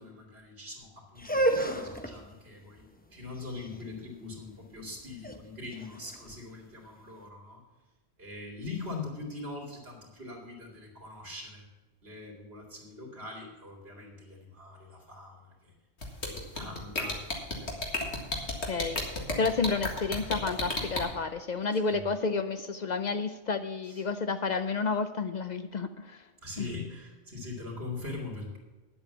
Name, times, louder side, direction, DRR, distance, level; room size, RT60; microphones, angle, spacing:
voice 1, 0.0-2.8 3.1-7.6 8.2-11.6 12.0-15.7 16.2-17.2 17.6-17.8 21.9-22.0 23.9-24.0 26.4-28.6, left 3 dB, 60° right, -3 dB, 2.7 m, -42 dB
sound 1, 1.1-7.1, right 1 dB, 10° left, 0.7 m, -33 dB
sound 2, 16.0-21.0, left 2 dB, 70° left, 2.1 m, -32 dB
voice 2, 18.6-19.0 19.4-26.3 26.6-26.7, left 4 dB, 55° left, 9 dB, 0.5 m, -30 dB
10.0 x 7.9 x 7.0 m, 1.2 s
omnidirectional pair, 1.2 m